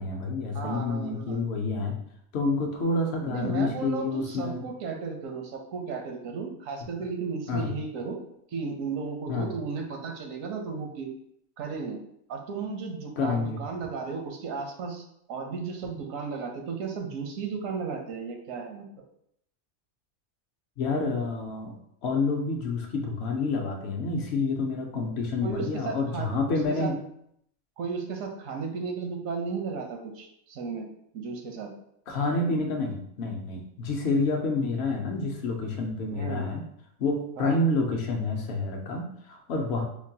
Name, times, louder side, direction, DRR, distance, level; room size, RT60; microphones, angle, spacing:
voice 1, 0.0-2.0 2.3-4.6 7.5-7.7 9.3-9.5 13.2-13.6 20.8-21.8 22.0-27.0 32.1-36.6 37.0-39.8, left 3 dB, 65° left, 3 dB, 0.8 m, -28 dB
voice 2, 0.5-1.4 3.3-8.2 8.5-11.1 11.6-12.0 12.3-18.8 25.4-26.9 27.8-31.7 36.1-36.5 37.4-37.6, right 5 dB, 85° right, 3 dB, 1.1 m, -34 dB
5.1 x 2.2 x 2.7 m, 0.72 s
omnidirectional pair, 1.3 m